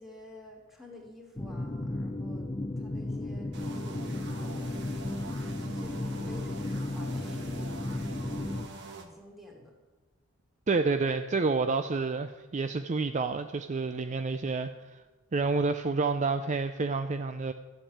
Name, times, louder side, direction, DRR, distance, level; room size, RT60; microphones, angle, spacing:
voice 1, 0.0-2.5 2.8-4.9 5.7-7.7 8.1-9.7, left 1 dB, ahead, -1 dB, 2.7 m, -51 dB
sound 1, 1.4-8.7, left 2 dB, 20° left, 0.6 m, -34 dB
sound 2, 3.5-9.0, right 3 dB, 55° right, 1.6 m, -45 dB
voice 2, 10.7-15.0 15.3-17.5, right 4 dB, 35° right, 9 dB, 0.5 m, -29 dB
13.0 x 7.4 x 8.6 m, 1.2 s
head